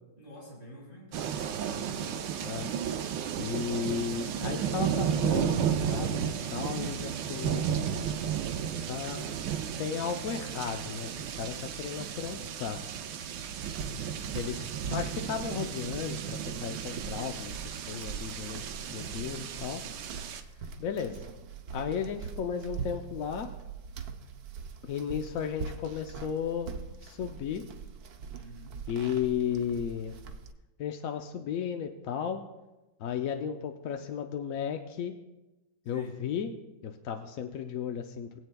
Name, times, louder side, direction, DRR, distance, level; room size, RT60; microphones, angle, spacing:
voice 1, 0.2-1.7 19.2-19.8 28.4-28.7 35.9-36.1, equal, 40° left, -5 dB, 5.0 m, -48 dB
sound 1, 1.1-20.4, right 8 dB, 90° right, 1.4 m, -33 dB
voice 2, 2.4-2.7 3.4-8.1 8.9-9.3 9.8-11.1 11.4-12.8 14.3-19.8 20.8-21.2 21.7-23.5 24.8-26.7 27.0-27.6 28.9-30.2 30.8-32.4 33.0-35.1 35.9-36.5 36.8-38.3, left 7 dB, 65° left, 5 dB, 0.9 m, -34 dB
sound 2, 13.6-30.5, right 5 dB, 65° right, 1.2 m, -43 dB
21.5 x 8.4 x 2.2 m, 1.0 s
omnidirectional pair, 1.9 m